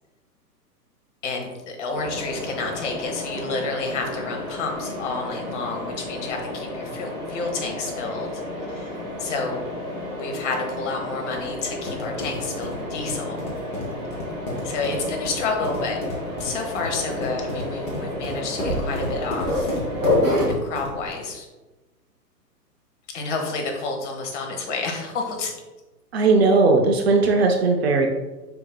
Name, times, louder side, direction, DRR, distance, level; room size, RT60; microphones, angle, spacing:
voice 1, 1.2-8.4 8.7-8.9 9.2-9.7 10.1-13.5 14.6-16.0 16.4-19.8 20.4-21.5 23.1-25.5, left 3 dB, 45° left, 2 dB, 1.1 m, -30 dB
Mechanisms, 1.9-20.5, left 1 dB, 10° right, 1.0 m, -30 dB
sound 1, 11.5-21.1, left 1 dB, 10° left, 0.6 m, -32 dB
voice 2, 26.1-28.1, right 3 dB, 40° right, 3 dB, 0.5 m, -18 dB
5.1 x 4.6 x 2.2 m, 1.1 s
hypercardioid pair, 125°, 49 cm